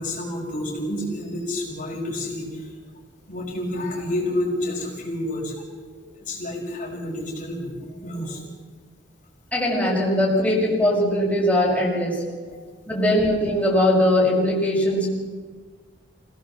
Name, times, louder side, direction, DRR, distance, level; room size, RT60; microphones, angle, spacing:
voice 1, 0.0-2.7 3.3-5.5 6.2-8.4, left 1 dB, 45° left, -1 dB, 5.9 m, -29 dB
voice 2, 9.5-12.2 12.9-15.1, left 1 dB, 10° left, -4 dB, 6.1 m, -20 dB
27.5 x 18.0 x 7.5 m, 1.4 s
head